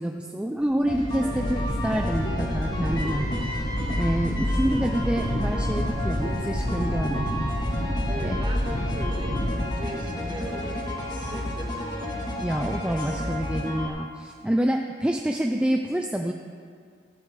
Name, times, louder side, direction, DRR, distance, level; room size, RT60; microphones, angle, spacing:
voice 1, 0.0-7.5 7.7-7.9 8.2-8.4 12.4-16.3, right 1 dB, 5° right, 2 dB, 0.4 m, -27 dB
sound 1, 0.7-10.2, equal, 80° left, 3.0 m, -29 dB
sound 2, 0.9-13.9, left 1 dB, 25° left, 1.7 m, -32 dB
sound 3, 5.1-5.5 6.0-6.1 6.6-6.9 7.2-8.0 8.7-8.8 9.3-10.5, equal, 55° right, 3.4 m, -37 dB
voice 2, 8.0-12.0, right 1 dB, 25° right, 0 dB, 1.4 m, -39 dB
14.5 x 4.9 x 8.1 m, 2.1 s
head